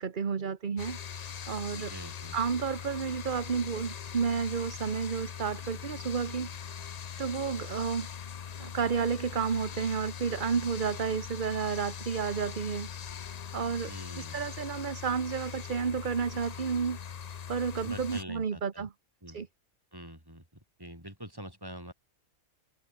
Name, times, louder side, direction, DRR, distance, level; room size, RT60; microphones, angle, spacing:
voice 1, 0.0-1.9 2.3-6.5 7.2-8.1 8.6-12.9 13.5-13.9 14.2-17.0 17.5-18.9 19.3-19.5, right 6 dB, 40° right, 1.2 m, -31 dB
sound 1, 0.8-18.2, left 7 dB, 50° left, 0.5 m, -41 dB
voice 2, 1.7-2.6 13.9-14.5 17.8-18.9 19.2-19.4 19.9-20.4 20.8-21.9, equal, 15° right, 7.0 m, -45 dB
omnidirectional pair, 1.4 m